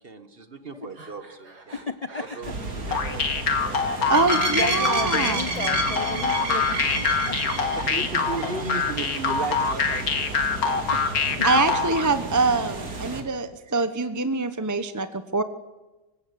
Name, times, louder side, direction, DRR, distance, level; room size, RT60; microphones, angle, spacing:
voice 1, 0.0-1.8 2.2-4.2 4.6-5.0 6.2-6.3 7.7-10.4 10.7-10.9, right 3 dB, 40° right, 10 dB, 1.5 m, -36 dB
Breathing, 0.9-3.3 3.6-4.1 4.5-6.1 6.3-9.1 9.4-10.1, right 3 dB, 85° right, 3.6 m, -48 dB
voice 2, 1.7-2.3 3.6-4.3 4.5-7.4 10.9-11.1 11.4-11.5, left 4 dB, 40° left, 12 dB, 0.5 m, -34 dB
sound 1, 2.4-13.2, right 3 dB, 65° right, 3.2 m, -31 dB
sound 2, 2.9-12.1, left 5 dB, 65° left, 2.2 m, -25 dB
voice 3, 4.1-5.5 11.4-15.4, right 3 dB, 15° right, 11 dB, 0.8 m, -24 dB
25.5 x 16.5 x 8.5 m, 1.1 s
omnidirectional pair, 1.7 m